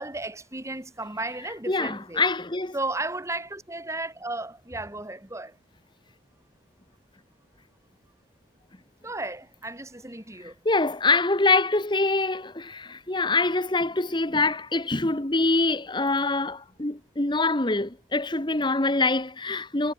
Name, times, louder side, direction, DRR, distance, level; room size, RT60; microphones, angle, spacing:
voice 1, 0.0-2.2 2.7-5.6 9.0-10.6, right 2 dB, 15° right, 3.6 m, -34 dB
voice 2, 1.7-2.8 10.4-19.9, left 3 dB, 25° left, 1.6 m, -25 dB
head